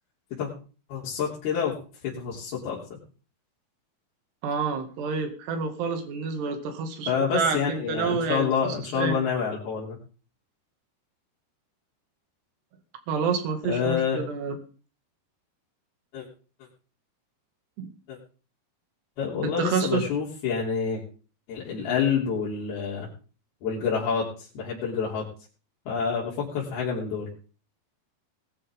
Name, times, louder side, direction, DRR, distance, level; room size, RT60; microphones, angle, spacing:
voice 1, 0.9-1.7 2.0-2.8 7.1-10.0 13.7-14.2 16.1-16.3 18.1-18.2 19.2-21.0 21.5-23.1 23.6-24.3 24.6-25.3 25.9-27.3, left 6 dB, 70° left, -6 dB, 5.1 m, -27 dB
voice 2, 4.4-9.2 13.1-14.6 17.8-17.9 19.4-20.0, right 5 dB, 85° right, 6 dB, 4.3 m, -28 dB
19.5 x 12.5 x 3.7 m, 0.37 s
omnidirectional pair, 4.7 m